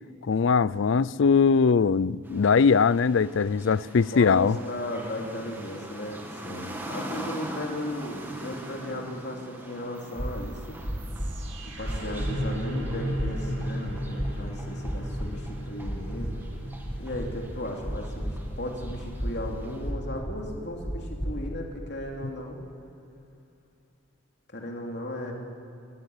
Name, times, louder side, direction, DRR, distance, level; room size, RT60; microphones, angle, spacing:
voice 1, 0.3-4.6, left 5 dB, 75° left, 0.4 m, -21 dB
sound 1, 2.2-19.9, right 1 dB, 10° right, 2.1 m, -43 dB
voice 2, 4.1-10.8 11.8-16.4 17.0-22.6 24.5-25.3, left 1 dB, 55° left, 3.1 m, -36 dB
sound 2, 10.0-20.0, equal, 65° right, 3.4 m, -37 dB
sound 3, 10.2-10.3 10.8-11.3 11.8-12.3 12.8-13.3 13.8-14.3 14.8-15.3 15.8-16.3 16.8-17.3 17.8-18.3 18.8-19.3 19.8-20.3 20.8-21.3, equal, 15° left, 4.4 m, -31 dB
23.5 x 19.0 x 8.1 m
head